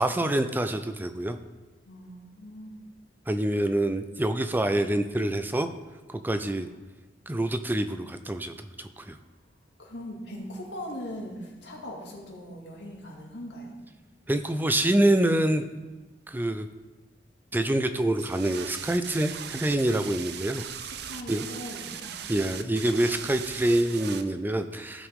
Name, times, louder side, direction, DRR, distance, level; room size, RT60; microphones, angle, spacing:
voice 1, 0.0-1.4 3.3-5.7 6.1-6.7 7.3-9.2 14.3-15.7 16.3-16.7 17.5-20.7 21.3-21.4 22.3-25.1, right 1 dB, 10° right, 9 dB, 0.4 m, -26 dB
voice 2, 1.9-2.8 6.6-6.7 9.8-13.7 20.8-22.1, equal, 75° left, -2 dB, 2.4 m, -40 dB
sound 1, 18.2-24.2, right 8 dB, 65° right, 0.6 m, -39 dB
16.5 x 5.8 x 3.7 m, 1.2 s
head